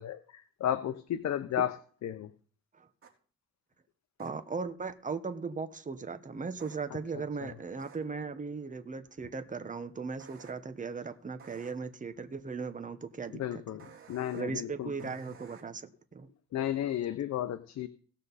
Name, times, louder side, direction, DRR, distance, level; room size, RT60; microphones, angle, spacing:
voice 1, 0.0-1.7 2.0-2.3 7.4-7.5 13.3-14.9 16.5-17.9, left 10 dB, 65° left, 0.9 m, -33 dB
sound 1, 3.0-3.1 4.2-4.3 6.6-6.8 7.8-8.0 10.2-10.5 11.4-11.7 13.8-14.4 15.0-15.6, right 6 dB, 45° right, 3.6 m, -52 dB
voice 2, 4.2-13.6 14.3-16.3, right 4 dB, 25° right, 1.2 m, -38 dB
18.0 x 6.4 x 4.2 m
cardioid pair, 90°, 30 cm